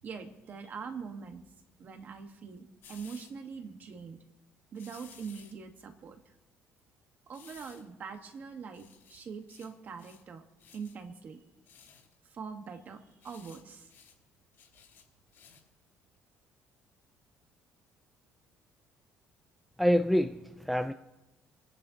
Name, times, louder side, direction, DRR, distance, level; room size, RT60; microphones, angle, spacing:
voice 1, 0.0-1.4 1.8-4.2 4.7-6.2 7.3-10.4 10.7-11.4 12.3-13.9, right 5 dB, 40° right, 6 dB, 1.3 m, -43 dB
sound 1, 2.8-3.3 4.7-5.5 7.3-7.9 8.3-8.4 8.7-9.7 10.0-10.3 10.6-10.9 11.6-12.1 13.1-13.6 13.9-14.1 14.5-15.7 16.1-16.2, left 7 dB, 60° left, 4.0 m, -56 dB
voice 2, 19.8-20.9, equal, ahead, 8 dB, 0.4 m, -26 dB
23.0 x 10.5 x 2.8 m, 0.98 s
cardioid pair, 155°, 5 cm